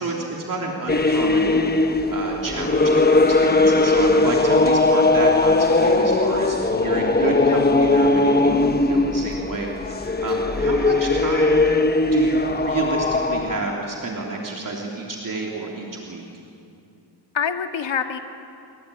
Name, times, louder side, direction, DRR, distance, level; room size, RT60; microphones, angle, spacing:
voice 1, 0.0-1.6 2.1-11.6 12.1-16.2, right 3 dB, 45° right, -1 dB, 3.3 m, -30 dB
sound 1, 0.9-13.6, left 2 dB, 20° left, 1.2 m, -19 dB
voice 2, 7.4-7.8 17.3-18.2, left 7 dB, 85° left, 6 dB, 1.9 m, -26 dB
29.5 x 23.5 x 8.7 m, 2.6 s
wide cardioid pair, 140°, 44 cm